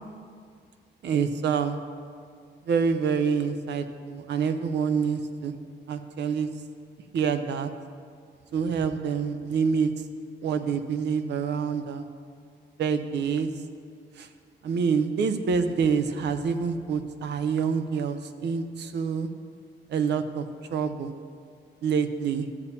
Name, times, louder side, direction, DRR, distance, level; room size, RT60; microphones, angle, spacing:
voice 1, 1.0-1.8 2.7-5.5 5.9-6.5 7.1-7.7 8.5-9.9 10.4-12.0 12.8-13.5 14.2-14.3 14.6-19.3 19.9-20.5 20.7-21.1 21.8-22.5, right 6 dB, 70° right, 9 dB, 0.6 m, -26 dB
13.0 x 8.3 x 2.8 m, 2.2 s
cardioid pair, 140°, 19 cm